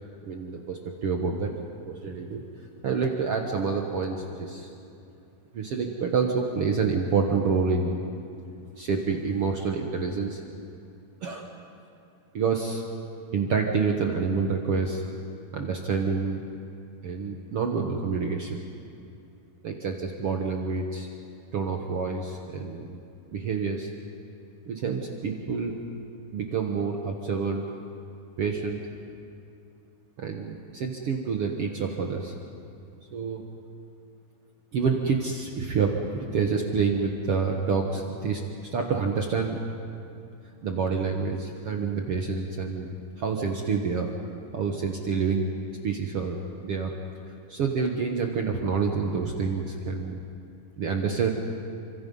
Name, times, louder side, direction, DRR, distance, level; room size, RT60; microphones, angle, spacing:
voice 1, 0.2-1.5 1.8-2.5 2.8-4.7 5.5-8.0 8.8-10.4 11.2-11.5 12.3-12.8 13.3-15.0 15.5-16.4 17.0-18.6 19.6-21.1 21.5-23.0 23.3-23.9 24.7-25.8 26.3-27.6 28.4-28.8 30.2-32.3 33.1-33.4 34.7-39.6 40.6-44.1 44.5-45.4 45.8-46.9 47.5-50.2 50.8-51.3, right 5 dB, 65° right, 2 dB, 1.5 m, -28 dB
29.0 x 26.0 x 5.5 m, 2.6 s
omnidirectional pair, 4.4 m